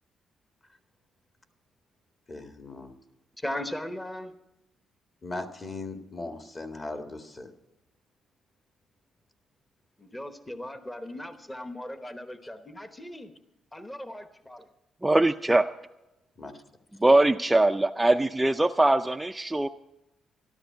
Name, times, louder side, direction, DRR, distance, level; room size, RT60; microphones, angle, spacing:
voice 1, 2.3-2.9 5.2-7.5 16.4-16.5, left 2 dB, 30° left, 5 dB, 1.7 m, -38 dB
voice 2, 3.4-4.3 10.0-13.3 13.7-14.7, left 1 dB, 15° left, 9 dB, 1.0 m, -38 dB
voice 3, 15.0-15.7 17.0-19.7, right 2 dB, 10° right, 6 dB, 0.4 m, -22 dB
13.0 x 12.5 x 5.7 m, 0.92 s
cardioid pair, 100°, 0 cm